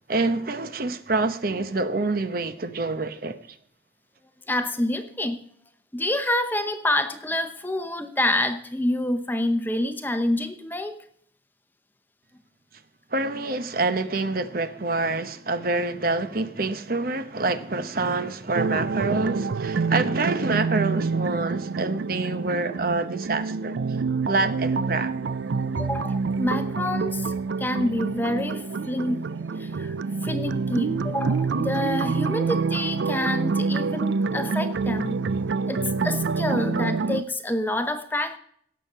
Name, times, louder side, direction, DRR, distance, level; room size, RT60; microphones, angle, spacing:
voice 1, 0.1-3.4 13.1-23.8 24.3-25.1, right 3 dB, 50° right, 0.9 m, -26 dB
voice 2, 4.5-5.4 5.9-11.0 25.8-29.2 29.6-30.0 30.2-35.2 35.7-38.4, left 1 dB, 10° left, 0.8 m, -27 dB
sound 1, 18.5-37.2, right 4 dB, 70° right, 0.4 m, -27 dB
17.0 x 7.6 x 5.6 m
head